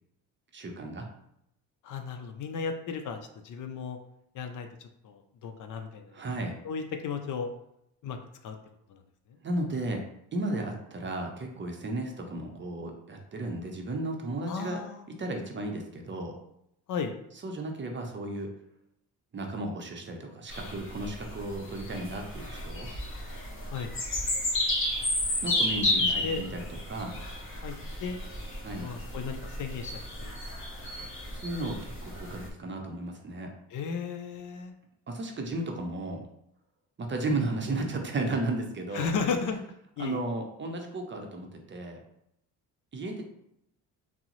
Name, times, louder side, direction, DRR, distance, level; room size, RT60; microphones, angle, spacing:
voice 1, 0.5-1.1 6.1-6.6 9.4-10.0 10.3-14.8 15.2-16.4 17.4-18.5 19.3-22.9 25.4-27.3 28.6-28.9 31.3-33.5 35.1-36.2 37.0-39.1 40.0-42.0 42.9-43.2, right 2 dB, 30° right, 2 dB, 0.6 m, -34 dB
voice 2, 1.8-3.2 3.4-4.0 4.3-6.2 6.6-7.5 8.0-8.2 8.4-8.6 8.9-9.0 14.5-15.1 16.9-17.1 23.7-23.9 25.8-26.4 27.6-28.2 28.8-30.3 31.0-31.1 33.7-34.7 38.9-39.6 40.0-40.2, left 5 dB, 55° left, 6 dB, 0.5 m, -35 dB
sound 1, 20.5-32.4, left 1 dB, 30° left, 1.1 m, -32 dB
3.5 x 2.0 x 2.9 m, 0.79 s
cardioid pair, 80°, 38 cm